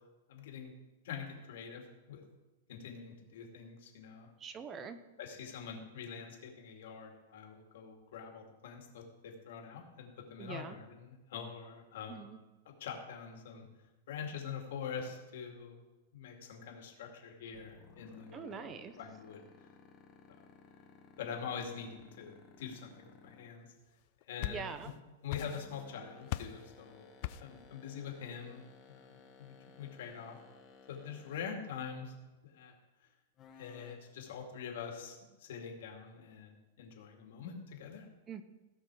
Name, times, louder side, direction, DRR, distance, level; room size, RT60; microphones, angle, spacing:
voice 1, 0.3-0.7 1.0-1.8 2.1-2.2 2.7-4.3 5.2-12.3 12.8-13.7 14.1-15.8 16.1-18.7 19.0-19.4 21.2-23.7 24.3-24.7 25.2-27.1 27.4-28.6 28.9-30.4 30.9-32.1 32.4-32.7 33.6-38.1, left 7 dB, 65° left, 2 dB, 2.4 m, -45 dB
voice 2, 4.4-5.0 10.4-10.8 12.1-12.4 18.3-19.0 24.4-24.9 38.3-38.4, right 6 dB, 20° right, 11 dB, 0.8 m, -43 dB
sound 1, 17.5-23.6 25.4-31.6 33.4-33.9, left 6 dB, 25° left, 1.5 m, -58 dB
sound 2, 24.0-25.0 25.3-25.9 26.3-26.7 27.2-27.6, left 15 dB, 45° left, 0.5 m, -40 dB
17.0 x 6.0 x 4.8 m, 1.1 s
supercardioid pair, 155°, 0 cm